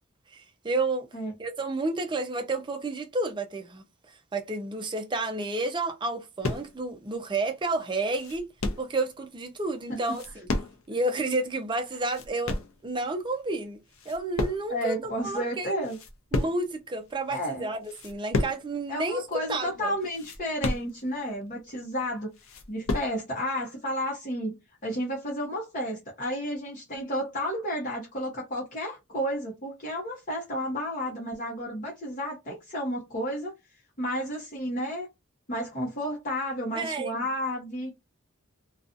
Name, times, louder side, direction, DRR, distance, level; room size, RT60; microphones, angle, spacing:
voice 1, 0.3-1.1 1.4-8.5 8.8-10.2 10.9-12.6 12.8-13.8 14.1-15.9 16.3-19.2 19.5-19.9 36.7-37.3, right 2 dB, 20° right, 0.5 m, -31 dB
sound 1, 6.4-6.9 7.4-7.5 7.8-9.0 10.0-11.0 11.3-11.4 11.8-12.8 13.4-13.6 13.9-14.9 15.3-15.4 15.7-16.8 17.3-17.4 17.8-18.7 19.0-19.1 19.4-19.5 20.0-21.3 21.8-21.9 22.2-23.2, left 2 dB, 70° left, 0.5 m, -32 dB
voice 2, 14.7-16.0 17.3-17.7 18.9-22.3 22.7-24.5 24.8-33.5 34.0-35.1 35.5-37.9, equal, 40° left, 0.9 m, -32 dB
2.6 x 2.3 x 2.5 m
head